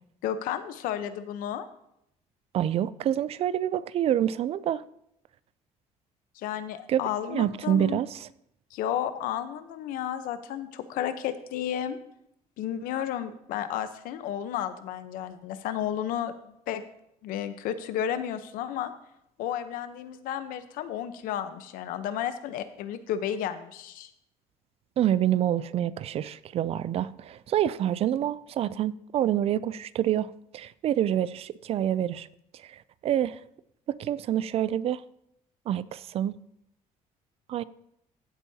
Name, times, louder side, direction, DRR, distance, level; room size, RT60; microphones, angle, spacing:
voice 1, 0.2-1.7 6.4-8.0 8.7-12.0 12.6-16.8 17.2-18.9 19.4-24.1, left 10 dB, 85° left, 0.9 m, -32 dB
voice 2, 2.5-4.8 6.9-7.0 7.3-8.3 25.0-32.3 32.5-33.4 33.9-35.0 35.7-36.4 37.5-37.6, right 11 dB, 45° right, 0.4 m, -27 dB
15.0 x 8.4 x 2.8 m
cardioid pair, 135°, 14 cm